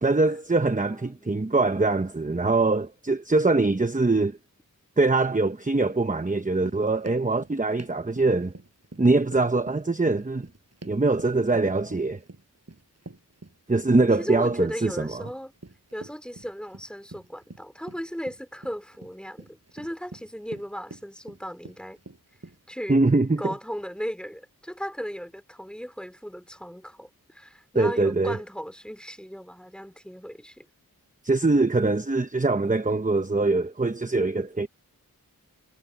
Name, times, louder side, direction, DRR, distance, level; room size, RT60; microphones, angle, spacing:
voice 1, 0.0-4.4 5.0-8.5 9.0-10.5 10.8-12.2 13.7-15.2 22.9-23.5 27.7-28.4 31.2-34.7, right 3 dB, 20° right, 0.9 m, -23 dB
voice 2, 0.8-1.4 14.0-15.5 15.9-22.0 22.7-23.0 23.4-30.7, equal, 5° left, 2.9 m, -36 dB
sound 1, 6.3-22.7, right 2 dB, 45° right, 7.7 m, -47 dB
wide cardioid pair, 50°, 35 cm